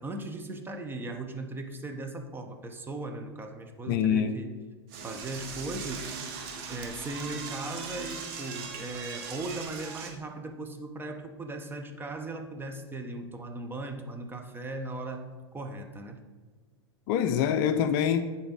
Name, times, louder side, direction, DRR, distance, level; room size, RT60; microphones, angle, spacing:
voice 1, 0.0-4.5 5.0-6.1 6.7-15.2 15.5-16.2, right 2 dB, 15° right, 5 dB, 0.8 m, -38 dB
voice 2, 3.9-4.4 17.1-18.2, left 8 dB, 50° left, 9 dB, 0.5 m, -25 dB
Door / Toilet flush, 4.9-10.1, right 5 dB, 55° right, 1.2 m, -39 dB
10.0 x 4.1 x 4.0 m, 1.4 s
figure-of-eight pair, 90°, 14 cm